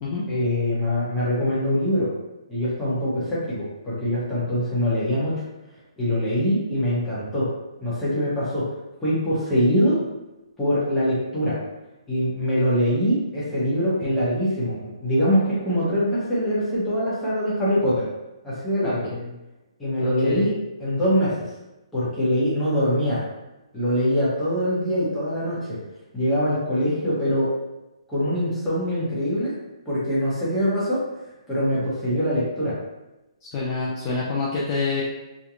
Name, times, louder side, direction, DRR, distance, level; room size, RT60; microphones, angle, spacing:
voice 1, 0.3-2.1 2.5-5.4 6.0-7.5 7.8-8.7 9.0-10.0 10.6-11.6 12.1-18.1 18.4-19.1 19.8-20.5 20.8-21.3 21.9-23.2 23.7-25.8 26.1-27.5 28.1-29.5 29.9-31.0 31.5-32.8, equal, 5° left, -10 dB, 0.8 m, -23 dB
voice 2, 18.8-19.3 20.0-20.5 33.5-35.0, left 4 dB, 25° left, -6 dB, 0.3 m, -28 dB
2.9 x 2.1 x 2.4 m, 1.0 s
hypercardioid pair, 170°, 3 cm